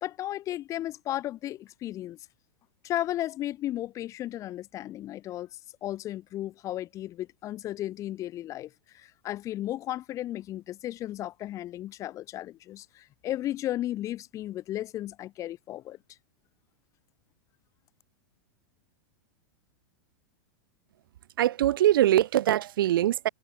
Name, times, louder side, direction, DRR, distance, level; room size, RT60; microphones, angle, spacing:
voice 1, 0.0-2.2 2.8-5.5 5.8-16.0, left 13 dB, 25° left, 0.9 m, -34 dB
voice 2, 21.4-23.3, right 13 dB, 75° right, 0.9 m, -22 dB
supercardioid pair, 145°, 12 cm